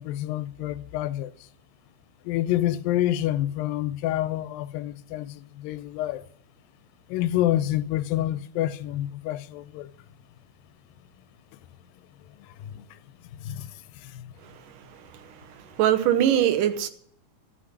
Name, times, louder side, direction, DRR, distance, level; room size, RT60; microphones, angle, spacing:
voice 1, 0.0-1.5 2.2-6.3 7.1-9.9 12.4-13.0 13.3-14.3, left 13 dB, 80° left, 2.3 m, -28 dB
voice 2, 14.4-16.9, right 11 dB, 75° right, 2.4 m, -24 dB
14.0 x 5.9 x 9.7 m
omnidirectional pair, 4.1 m